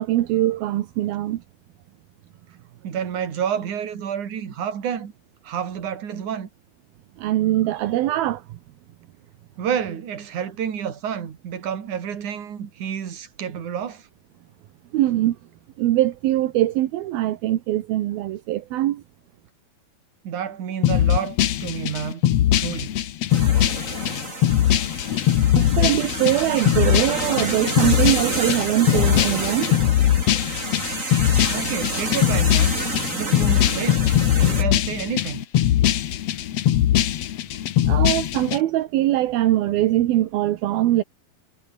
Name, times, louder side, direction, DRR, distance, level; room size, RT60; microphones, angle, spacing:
voice 1, 0.0-1.4 7.2-8.4 14.9-15.4 15.8-19.0 25.6-29.7 37.9-41.0, right 14 dB, 75° right, 3.0 m, -22 dB
voice 2, 2.8-5.1 5.4-6.5 9.6-14.1 20.2-22.3 22.5-23.0 31.5-32.8 33.1-34.1 34.4-35.4, right 8 dB, 55° right, 4.0 m, -29 dB
sound 1, 20.8-38.6, left 11 dB, 70° left, 1.6 m, -21 dB
sound 2, 23.3-34.6, right 2 dB, 20° right, 5.4 m, -29 dB
omnidirectional pair, 4.5 m